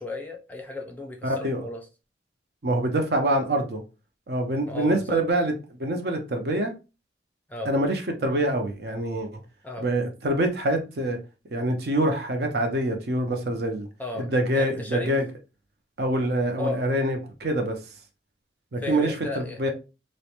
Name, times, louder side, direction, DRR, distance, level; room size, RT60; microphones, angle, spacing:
voice 1, 0.0-1.8 4.7-5.2 7.5-7.7 9.6-9.8 14.0-15.2 16.6-16.9 18.8-19.7, left 2 dB, 10° left, 0.4 m, -34 dB
voice 2, 1.2-1.6 2.6-3.8 4.3-5.5 5.8-6.7 7.6-9.4 9.8-11.2 11.5-13.9 14.1-15.3 16.0-17.8 18.7-19.7, right 1 dB, 60° right, 0.6 m, -25 dB
2.5 x 2.1 x 2.8 m
head